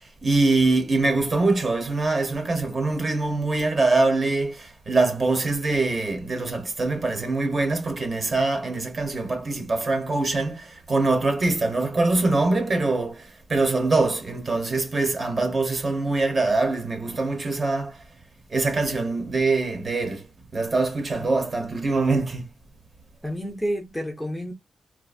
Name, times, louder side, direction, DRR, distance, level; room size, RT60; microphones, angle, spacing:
voice 1, 0.2-18.0 18.5-20.2 20.5-22.5, right 3 dB, 30° right, 0.9 m, -23 dB
voice 2, 23.2-24.5, equal, 5° left, 0.7 m, -30 dB
3.9 x 2.6 x 2.3 m
wide cardioid pair, 155°, 0 cm